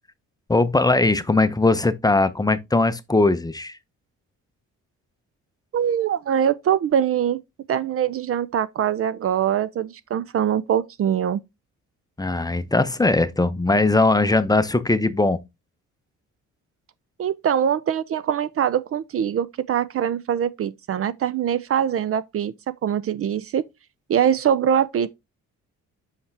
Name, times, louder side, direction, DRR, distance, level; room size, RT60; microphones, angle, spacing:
voice 1, 0.5-3.8 12.2-15.4, left 2 dB, 15° left, 0.7 m, -20 dB
voice 2, 5.7-7.4 7.7-11.4 17.2-22.5 22.8-23.6 24.1-25.1, right 9 dB, 50° right, 0.5 m, -23 dB
5.8 x 5.4 x 3.3 m
cardioid pair, 90°, 30 cm